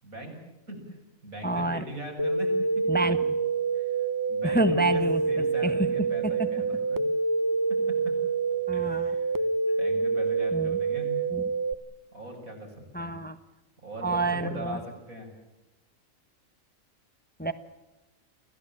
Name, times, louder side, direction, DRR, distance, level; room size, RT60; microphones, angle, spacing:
voice 1, 0.0-0.4 0.7-1.0 1.2-3.0 3.7-7.0 7.7-8.2 8.7-9.5 9.8-11.1 12.1-13.2 13.8-14.8 15.1-15.3, right 1 dB, 85° right, 2 dB, 7.5 m, -40 dB
voice 2, 1.4-1.8 2.9-3.2 4.4-5.9 6.2-6.5 8.7-9.1 10.5-10.8 11.3-11.5 12.9-13.4 14.0-14.8 17.4-17.5, right 2 dB, 5° left, 9 dB, 1.2 m, -28 dB
sound 1, 2.2-11.7, right 4 dB, 20° right, 0.7 m, -27 dB
28.0 x 17.0 x 8.7 m, 1.0 s
omnidirectional pair, 1.4 m